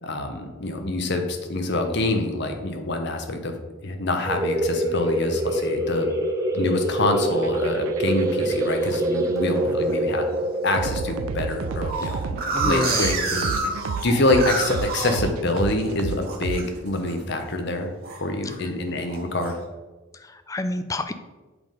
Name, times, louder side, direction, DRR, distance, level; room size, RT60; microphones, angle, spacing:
voice 1, 0.0-3.6 3.8-6.1 6.5-10.3 10.6-13.6 14.0-17.9 18.2-19.6, left 2 dB, 50° left, 5 dB, 0.9 m, -26 dB
sound 1, 4.3-13.6, right 1 dB, 15° right, 0.8 m, -26 dB
sound 2, 7.3-17.1, right 6 dB, 85° right, 0.4 m, -32 dB
sound 3, 8.3-9.0 9.5-9.9 10.3-10.4 10.7-10.8 11.1-15.9 16.2-16.7 17.0-17.3 17.6-18.6 19.1-19.5, right 3 dB, 45° right, 1.1 m, -29 dB
voice 2, 12.5-13.1 18.4-18.5 20.1-21.1, left 2 dB, 15° left, 9 dB, 0.3 m, -28 dB
8.0 x 3.8 x 5.1 m, 1.2 s
head